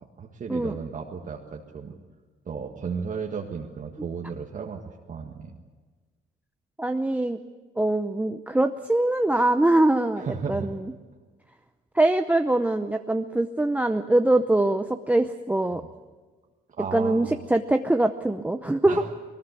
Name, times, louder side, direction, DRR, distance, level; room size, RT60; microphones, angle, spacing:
voice 1, 0.2-2.0 2.5-5.5 10.2-10.7 15.8-15.9 16.8-17.3 18.9-19.1, right 6 dB, 40° right, 0 dB, 1.8 m, -34 dB
voice 2, 6.8-7.4 7.8-10.8 12.0-15.8 16.9-19.0, right 1 dB, 10° right, 6 dB, 0.7 m, -23 dB
21.0 x 20.0 x 8.4 m, 1.4 s
cardioid pair, 125°, 20 cm